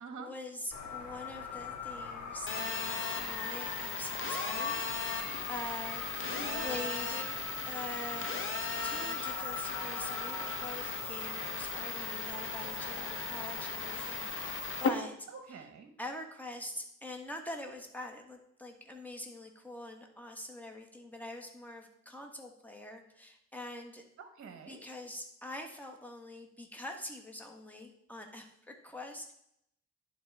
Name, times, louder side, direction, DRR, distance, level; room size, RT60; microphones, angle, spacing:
voice 1, 0.0-6.1 6.6-8.5 8.8-15.2 16.0-24.0 24.7-29.3, left 1 dB, 5° left, 2 dB, 1.4 m, -44 dB
sound 1, 0.7-14.8, left 4 dB, 75° left, 1.6 m, -42 dB
Telephone, 2.5-14.9, left 5 dB, 45° left, 1.0 m, -37 dB
voice 2, 6.3-6.8 15.3-15.9 24.2-24.8, right 5 dB, 50° right, 7 dB, 1.1 m, -45 dB
11.0 x 3.9 x 4.7 m, 0.75 s
cardioid pair, 90°, 30 cm